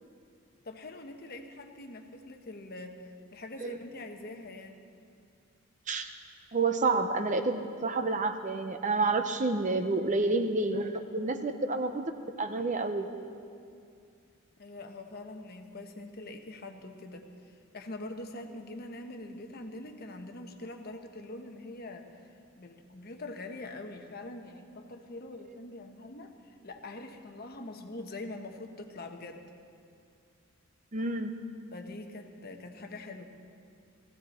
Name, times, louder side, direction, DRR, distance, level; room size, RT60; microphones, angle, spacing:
voice 1, 0.6-4.8 14.6-17.2 17.7-29.4 31.7-33.2, left 2 dB, 45° left, 4 dB, 1.1 m, -44 dB
voice 2, 6.5-13.1 30.9-31.3, right 3 dB, 35° right, 8 dB, 0.7 m, -29 dB
17.5 x 15.0 x 4.3 m, 2.4 s
head